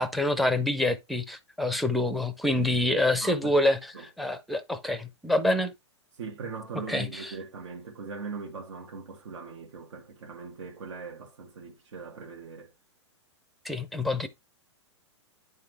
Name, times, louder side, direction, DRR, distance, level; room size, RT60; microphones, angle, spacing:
voice 1, 0.0-5.7 6.9-7.3 13.6-14.3, left 1 dB, ahead, 0.5 m, -26 dB
voice 2, 3.2-4.1 6.2-12.7, right 5 dB, 80° right, 1.5 m, -40 dB
9.4 x 3.7 x 3.2 m
hypercardioid pair, 130°, 15 cm